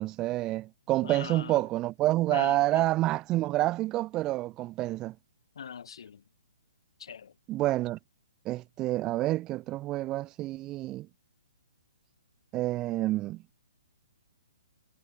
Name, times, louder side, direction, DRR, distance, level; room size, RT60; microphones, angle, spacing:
voice 1, 0.0-5.1 7.5-8.0 8.4-11.1 12.5-13.4, right 16 dB, 20° right, 0.5 m, -28 dB
voice 2, 1.0-1.6 2.3-2.9 5.5-6.2 7.0-7.3, left 7 dB, 70° left, 1.3 m, -40 dB
hypercardioid pair, 150°, 3 cm